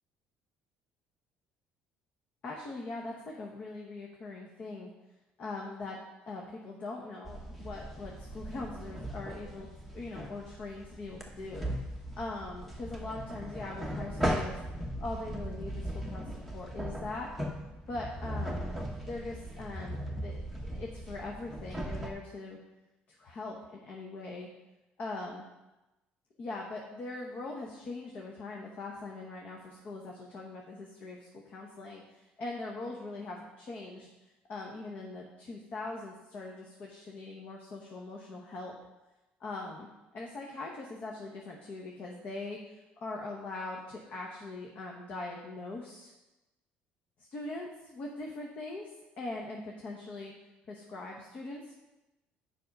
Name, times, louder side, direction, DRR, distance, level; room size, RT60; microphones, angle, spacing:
voice 1, 2.4-4.9 5.4-6.0 6.3-11.7 12.2-14.6 15.0-17.3 17.9-18.7 19.0-22.6 23.2-24.5 25.0-25.4 26.4-34.1 34.5-38.7 39.4-39.9 40.1-42.7 43.0-46.1 47.3-50.3 50.7-51.7, left 2 dB, 45° left, -1 dB, 1.1 m, -41 dB
sound 1, 7.2-22.1, equal, ahead, 1.0 m, -38 dB
7.5 x 5.3 x 5.4 m, 1.0 s
cardioid pair, 135°, 4 cm